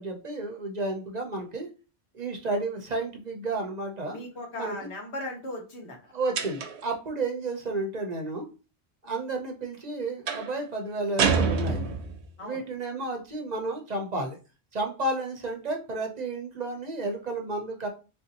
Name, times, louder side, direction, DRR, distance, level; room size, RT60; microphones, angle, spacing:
voice 1, 0.0-1.7 2.1-4.2 4.5-4.9 6.1-8.5 9.0-11.8 12.4-14.4 14.7-17.9, right 2 dB, 45° right, 3 dB, 0.7 m, -32 dB
voice 2, 4.1-6.0 12.4-12.6, left 1 dB, 85° left, 1 dB, 1.3 m, -37 dB
sound 1, 6.3-6.9 10.3-10.6 11.2-12.3, right 5 dB, 90° right, 0.9 m, -26 dB
3.6 x 2.6 x 2.8 m, 0.32 s
omnidirectional pair, 1.1 m